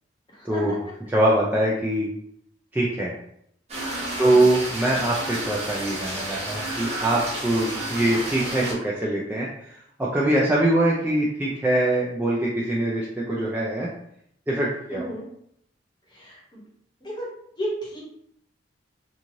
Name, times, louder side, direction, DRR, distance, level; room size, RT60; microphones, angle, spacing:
voice 1, 0.4-0.8 1.1-2.1 2.7-3.1 4.2-13.9 14.5-15.1, right 1 dB, 10° right, -6 dB, 0.3 m, -23 dB
sound 1, 3.7-8.7, right 1 dB, 35° right, 0.7 m, -31 dB
voice 2, 4.2-4.5 14.9-15.2 16.1-16.6 17.0-17.3 17.6-18.0, right 1 dB, 25° left, -4 dB, 0.8 m, -33 dB
3.0 x 2.4 x 2.6 m, 0.71 s
head